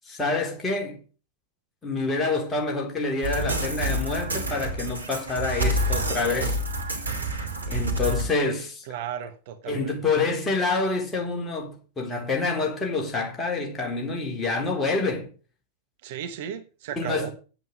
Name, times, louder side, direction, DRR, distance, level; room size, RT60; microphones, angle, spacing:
voice 1, 0.1-1.0 1.8-6.6 7.7-8.8 9.7-15.3 17.0-17.3, left 3 dB, 15° left, 3.7 m, -27 dB
sound 1, 3.2-8.3, right 1 dB, 75° right, 2.5 m, -28 dB
voice 2, 8.8-10.0 16.0-17.3, right 9 dB, 50° right, 1.2 m, -35 dB
9.1 x 8.1 x 6.6 m
figure-of-eight pair, 90°, 0 cm